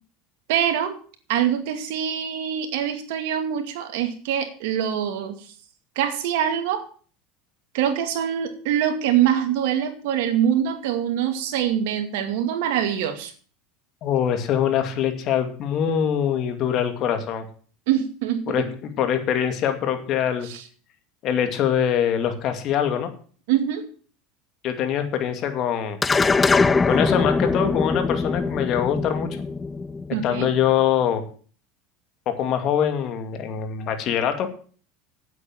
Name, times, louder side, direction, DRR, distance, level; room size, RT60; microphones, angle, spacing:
voice 1, 0.5-1.0 1.3-5.4 6.0-6.8 7.7-13.3 17.9-18.4 20.4-20.6 23.5-23.8 30.1-30.5, right 10 dB, 75° right, 7 dB, 2.3 m, -24 dB
voice 2, 14.0-17.4 18.5-20.5 21.2-23.1 24.6-26.0 26.9-29.3 30.2-31.2 32.3-34.5, left 9 dB, 50° left, 7 dB, 2.4 m, -23 dB
sound 1, 26.0-30.6, left 4 dB, 20° left, 0.5 m, -22 dB
9.0 x 8.2 x 7.6 m, 0.42 s
supercardioid pair, 115°, 0 cm